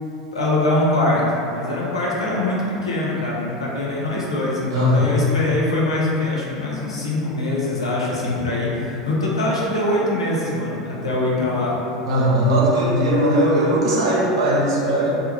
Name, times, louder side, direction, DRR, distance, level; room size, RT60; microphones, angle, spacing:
voice 1, 0.3-11.7, left 2 dB, 80° left, -5 dB, 0.5 m, -23 dB
voice 2, 4.7-5.2 12.0-15.2, equal, 70° right, -4 dB, 0.6 m, -18 dB
2.4 x 2.2 x 3.0 m, 2.9 s
figure-of-eight pair, 80°, 3 cm